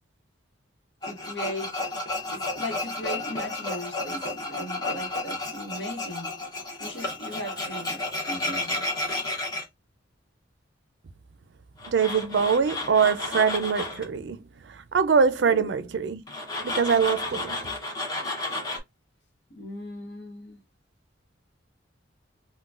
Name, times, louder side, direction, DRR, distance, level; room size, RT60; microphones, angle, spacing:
Tools, 1.0-9.6 11.8-14.0 16.3-18.8, left 2 dB, 20° left, 0.8 m, -32 dB
voice 1, 1.1-1.7 2.3-6.4 6.8-8.0 8.3-8.9 15.5-15.7 19.5-20.6, equal, 60° left, 1.0 m, -37 dB
voice 2, 11.9-16.2 16.6-17.6, right 6 dB, 65° right, 0.4 m, -23 dB
3.8 x 2.2 x 2.3 m
head